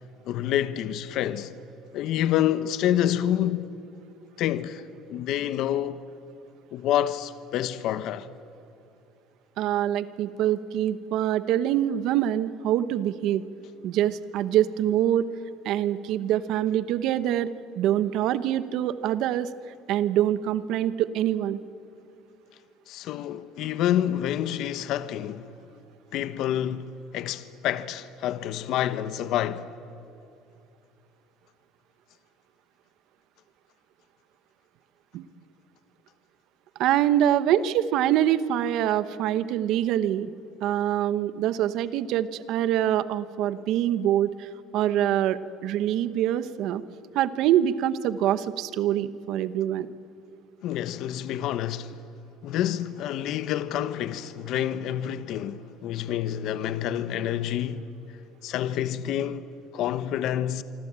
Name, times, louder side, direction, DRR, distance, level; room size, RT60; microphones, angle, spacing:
voice 1, 0.3-1.5 1.9-3.7 4.4-4.8 5.1-6.1 6.7-8.3 22.9-25.5 26.1-29.7 50.6-51.9 52.4-57.9 58.4-59.5 59.7-60.6, left 11 dB, 55° left, 1.1 m, -28 dB
voice 2, 9.6-13.4 13.8-15.2 15.6-17.5 17.8-19.5 19.9-21.6 35.1-35.2 36.8-40.3 40.6-46.8 47.1-49.9, right 11 dB, 60° right, 1.0 m, -25 dB
25.5 x 25.0 x 8.9 m
cardioid pair, 165°, 0 cm